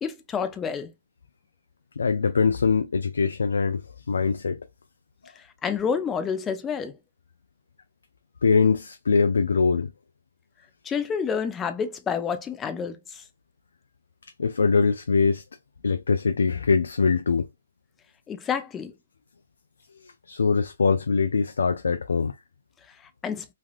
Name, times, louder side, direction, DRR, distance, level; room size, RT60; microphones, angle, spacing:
voice 1, 0.0-0.9 5.4-7.0 10.8-13.2 18.3-18.9 22.9-23.5, left 6 dB, 15° left, 0.5 m, -29 dB
voice 2, 2.0-4.6 8.4-9.9 14.4-15.4 15.8-17.5 20.0-22.3, left 5 dB, 85° left, 0.3 m, -23 dB
3.3 x 2.3 x 2.3 m
hypercardioid pair, 140°, 0 cm